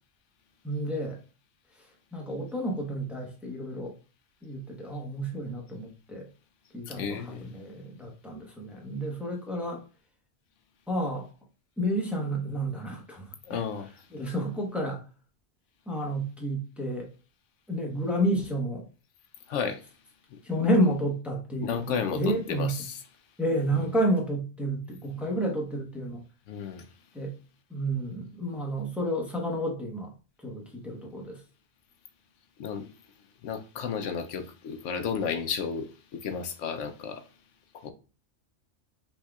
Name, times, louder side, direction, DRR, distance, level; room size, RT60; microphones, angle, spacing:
voice 1, 0.6-1.2 1.8-1.9 2.1-3.9 4.4-6.3 6.7-9.8 10.9-11.3 11.8-13.6 14.1-15.0 15.9-17.1 17.7-18.8 20.4-22.7 23.4-26.2 27.1-27.3 27.7-30.1 30.4-31.4, right 1 dB, ahead, 0.9 m, -30 dB
voice 2, 6.9-7.5 13.5-13.9 19.5-19.8 20.3-20.4 21.6-23.0 26.5-26.9 32.6-32.9 33.4-37.2 37.7-37.9, left 6 dB, 80° left, 1.0 m, -33 dB
5.6 x 3.2 x 2.3 m
omnidirectional pair, 1.3 m